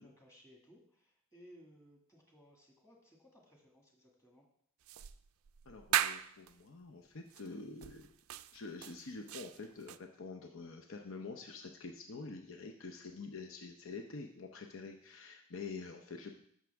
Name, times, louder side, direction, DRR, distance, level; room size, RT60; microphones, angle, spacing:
voice 1, 0.0-4.4, equal, 15° left, 0 dB, 2.0 m, -61 dB
sound 1, 4.9-6.5 7.3-7.5 7.8-10.0, right 11 dB, 80° right, 0.4 m, -38 dB
voice 2, 5.7-8.1 8.5-16.3, left 3 dB, 70° left, 4 dB, 0.7 m, -47 dB
14.0 x 6.1 x 3.5 m, 0.66 s
head